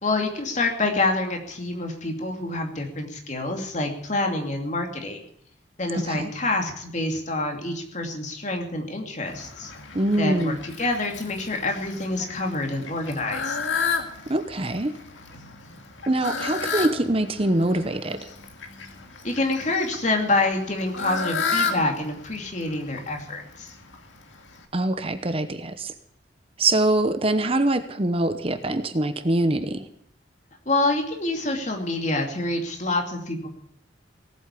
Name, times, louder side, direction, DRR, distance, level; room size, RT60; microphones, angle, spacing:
voice 1, 0.0-5.2 5.8-9.7 10.2-13.6 19.2-23.7 30.7-33.5, left 2 dB, 40° left, 3 dB, 2.6 m, -27 dB
voice 2, 5.9-6.3 9.9-10.6 14.3-14.9 16.1-18.2 24.7-25.9 26.6-29.9, right 1 dB, 30° right, 9 dB, 0.9 m, -24 dB
Fowl, 9.3-24.7, left 5 dB, 90° left, 2.2 m, -33 dB
18.0 x 8.2 x 8.3 m, 0.67 s
head